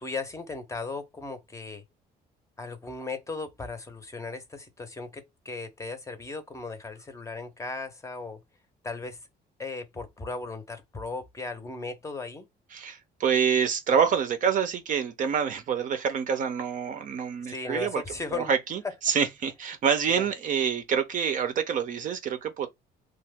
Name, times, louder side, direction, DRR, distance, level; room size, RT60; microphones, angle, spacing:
voice 1, 0.0-1.8 2.6-8.4 8.8-9.2 9.6-12.5 17.5-18.5 20.1-20.3, left 3 dB, 15° left, 0.6 m, -36 dB
voice 2, 12.7-18.0 18.3-22.7, right 7 dB, 50° right, 0.6 m, -27 dB
2.9 x 2.0 x 3.4 m
cardioid pair, 110°, 17 cm